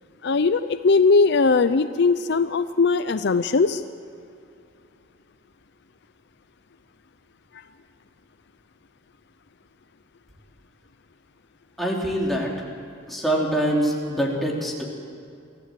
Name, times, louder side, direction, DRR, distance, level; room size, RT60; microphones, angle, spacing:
voice 1, 0.2-3.8, left 4 dB, 55° left, 12 dB, 0.5 m, -19 dB
voice 2, 11.8-12.5 13.1-14.8, right 1 dB, ahead, -3 dB, 3.2 m, -24 dB
24.0 x 15.0 x 7.6 m, 2.5 s
head